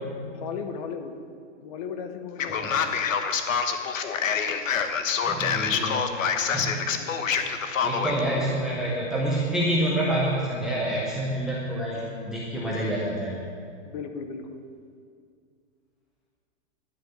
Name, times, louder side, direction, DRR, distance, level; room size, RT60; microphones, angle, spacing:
voice 1, 0.3-1.2 1.6-3.1 7.0-7.4 12.7-12.9 13.8-14.6, left 6 dB, 30° left, 7 dB, 0.8 m, -37 dB
Male speech man speaking, 2.4-8.2, left 6 dB, 85° left, 1.2 m, -26 dB
voice 2, 5.2-6.0 6.4-6.8 7.8-13.4, right 1 dB, ahead, -7 dB, 0.5 m, -27 dB
11.0 x 6.4 x 9.0 m, 2.3 s
hypercardioid pair, 160°, 38 cm